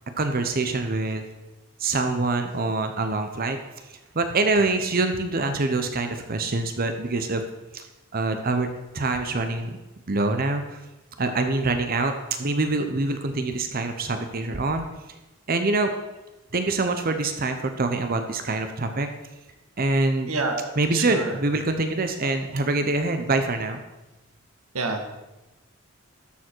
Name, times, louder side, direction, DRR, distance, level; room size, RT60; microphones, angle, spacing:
voice 1, 0.2-1.2 1.8-3.6 3.9-7.4 7.7-7.9 8.1-8.7 8.9-9.8 10.1-10.8 11.2-12.1 12.4-14.9 15.5-16.0 16.5-19.1 19.8-20.3 20.8-23.8, right 3 dB, 45° right, 7 dB, 0.8 m, -25 dB
voice 2, 20.3-21.4 24.7-25.0, right 3 dB, 85° right, 4 dB, 1.6 m, -28 dB
12.5 x 7.1 x 4.6 m, 1.0 s
head